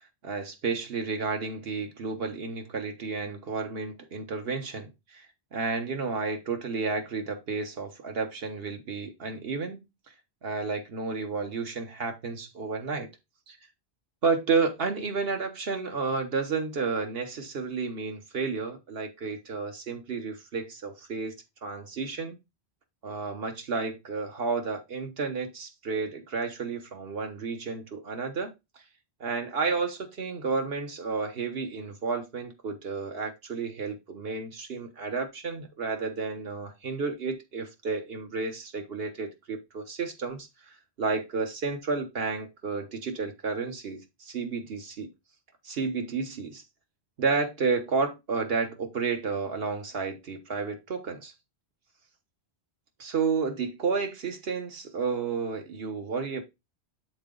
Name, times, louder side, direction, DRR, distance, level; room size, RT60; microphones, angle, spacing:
voice 1, 0.2-5.3 5.5-9.8 10.4-13.1 13.5-13.6 14.2-21.3 21.6-22.4 23.0-28.5 29.2-40.5 41.0-45.1 45.6-46.6 47.2-51.3 53.0-56.4, right 4 dB, 65° right, 1.2 m, -31 dB
7.0 x 3.9 x 3.7 m
omnidirectional pair, 1.1 m